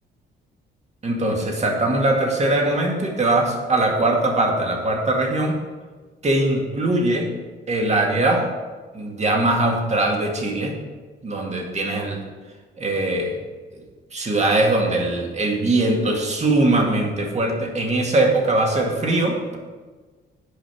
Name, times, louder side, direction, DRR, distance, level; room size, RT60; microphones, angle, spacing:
voice 1, 1.0-5.5 6.2-7.3 7.7-8.5 8.9-10.7 11.2-12.2 12.8-13.4 14.1-19.6, right 2 dB, 35° right, 1 dB, 2.0 m, -21 dB
8.6 x 5.3 x 6.1 m, 1.4 s
cardioid pair, 90°, 20 cm